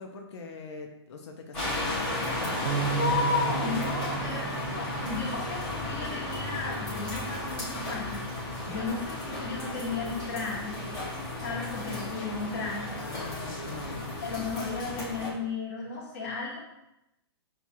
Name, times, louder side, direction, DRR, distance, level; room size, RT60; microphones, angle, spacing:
voice 1, 0.0-2.7 12.9-14.5, left 4 dB, 90° left, 2 dB, 0.6 m, -43 dB
sound 1, 1.5-15.3, left 1 dB, 10° left, 0.8 m, -34 dB
Bass guitar, 2.7-7.1 7.7-8.9, right 9 dB, 55° right, 0.4 m, -37 dB
voice 2, 2.8-10.8 11.4-13.0 14.2-16.6, left 4 dB, 35° left, -5 dB, 1.3 m, -34 dB
6.3 x 2.4 x 2.8 m, 0.87 s
hypercardioid pair, 180°, 14 cm